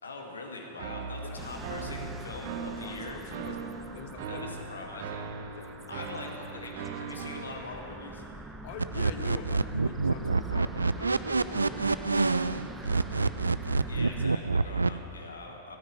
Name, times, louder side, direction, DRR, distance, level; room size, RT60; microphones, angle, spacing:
voice 1, 0.0-3.2 4.3-5.3 5.9-8.2 13.9-15.8, left 3 dB, 75° left, 2 dB, 2.2 m, -42 dB
sound 1, 0.8-7.6, right 5 dB, 55° right, 1.1 m, -39 dB
sound 2, 1.4-14.3, right 2 dB, 10° right, 1.0 m, -44 dB
voice 2, 2.7-4.6 5.5-5.8 6.2-6.7 8.6-13.2 14.8-15.0, left 7 dB, 50° left, 7 dB, 1.3 m, -46 dB
sound 3, 8.8-14.9, right 3 dB, 80° right, 0.4 m, -26 dB
15.5 x 9.7 x 9.6 m, 2.9 s
figure-of-eight pair, 90°, 0 cm